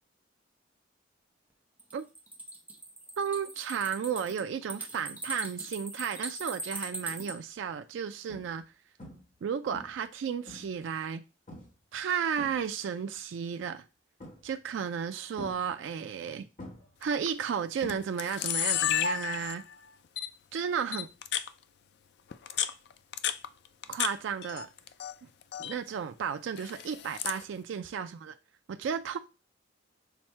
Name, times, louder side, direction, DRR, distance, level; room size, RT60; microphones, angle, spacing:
sound 1, 1.8-7.3, right 2 dB, 10° right, 0.6 m, -40 dB
voice 1, 3.2-8.6 9.4-11.2 11.9-13.8 14.4-16.5 17.0-19.6 20.5-21.1 23.9-24.7 25.6-28.3 28.7-29.2, right 7 dB, 75° right, 0.3 m, -33 dB
sound 2, 6.7-7.0 7.6-7.7 8.3-8.7 9.0-9.4 9.7-10.9 11.5-11.8 12.2-13.0 14.2-14.7 15.4-16.3 16.6-18.5 18.7-19.1 21.2-21.3, left 1 dB, 40° left, 1.2 m, -47 dB
Camera, 17.0-17.3 17.9-18.0 18.2-19.7 20.2-20.3 20.9-21.5 22.3-24.1 24.4-25.1 25.4-25.8 26.6-27.4, left 10 dB, 55° left, 0.3 m, -31 dB
5.9 x 2.1 x 4.3 m
head